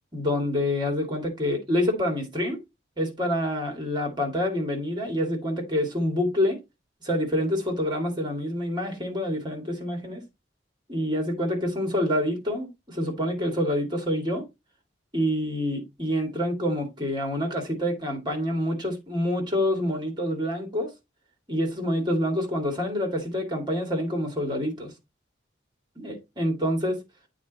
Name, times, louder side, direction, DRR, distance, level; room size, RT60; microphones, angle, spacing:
voice 1, 0.1-2.6 3.0-6.6 7.0-10.2 10.9-14.4 15.1-20.9 21.5-24.9 26.0-27.0, left 1 dB, 25° right, 2.2 m, -27 dB
8.5 x 3.9 x 4.1 m
head